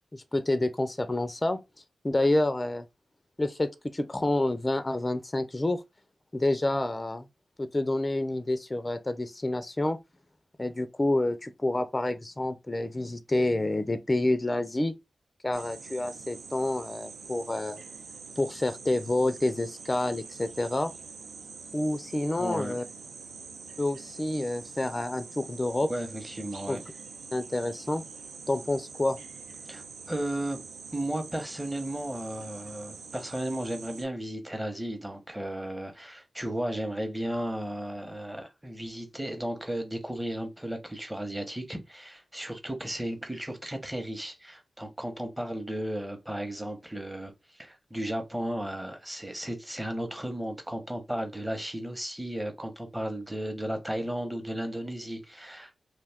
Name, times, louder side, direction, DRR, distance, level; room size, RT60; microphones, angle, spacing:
voice 1, 0.1-1.6 2.0-2.9 3.4-5.8 6.3-7.3 7.6-10.0 10.6-14.9 15.4-17.8 18.4-20.9 21.7-22.8 23.8-25.9 26.7-26.8 27.3-28.0 28.5-29.2, left 1 dB, 25° left, 0.4 m, -28 dB
sound 1, 15.5-34.1, right 5 dB, 85° right, 0.4 m, -45 dB
voice 2, 22.4-22.8 25.9-26.8 29.7-30.6 30.9-47.3 47.6-55.8, right 1 dB, 10° right, 0.8 m, -34 dB
2.4 x 2.3 x 3.4 m
cardioid pair, 55°, 0 cm